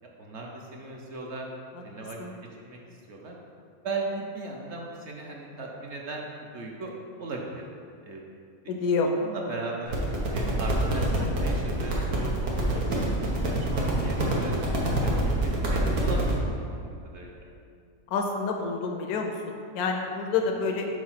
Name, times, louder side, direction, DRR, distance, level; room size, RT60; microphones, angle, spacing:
voice 1, 0.0-1.5 1.8-2.2 2.6-2.8 3.1-3.3 3.8-6.3 6.5-6.9 7.2-7.6 8.0-8.2 8.6-8.7 9.0-10.0 10.3-12.3 12.7-14.6 15.0-17.4 20.5-20.6, right 3 dB, 60° right, -1 dB, 0.9 m, -37 dB
voice 2, 8.7-9.1 18.1-19.3 19.7-20.9, left 4 dB, 90° left, 2 dB, 1.1 m, -27 dB
sound 1, 9.9-16.3, right 1 dB, 85° right, 1.5 m, -26 dB
4.8 x 4.3 x 5.7 m, 2.4 s
omnidirectional pair, 1.5 m